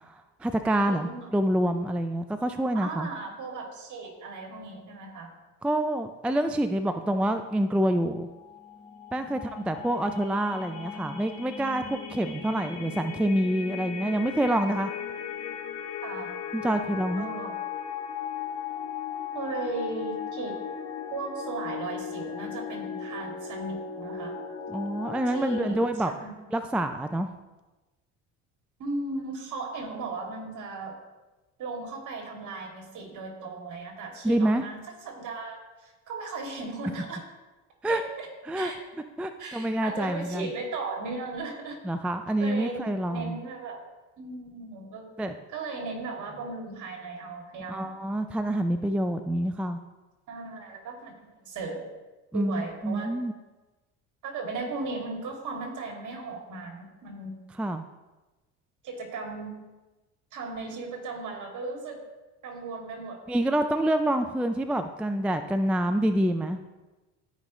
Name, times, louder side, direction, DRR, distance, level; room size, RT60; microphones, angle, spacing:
voice 1, 0.0-3.1 5.6-8.3 9.1-14.9 16.5-17.3 24.7-26.1 26.5-27.3 34.2-34.6 37.8-38.0 38.5-38.7 39.2-40.5 41.8-43.4 45.2-45.4 47.7-49.8 52.3-53.3 57.6-57.8 63.3-66.6, right 1 dB, 5° right, 8 dB, 0.3 m, -27 dB
voice 2, 0.9-1.3 2.7-5.3 16.0-16.3 17.2-17.5 19.3-20.5 21.1-24.4 25.3-25.8 26.1-26.3 28.8-31.0 31.6-37.2 37.9-38.3 38.5-38.8 39.4-41.8 42.4-43.8 44.2-45.1 45.5-47.9 50.3-51.9 52.3-53.1 54.2-57.4 58.8-59.6 60.3-62.0 62.4-63.2 64.1-64.2, right 3 dB, 55° right, 1 dB, 2.6 m, -36 dB
sound 1, 8.2-25.7, left 7 dB, 90° left, 2.2 m, -37 dB
13.5 x 5.3 x 3.2 m, 1.1 s
supercardioid pair, 85°, 37 cm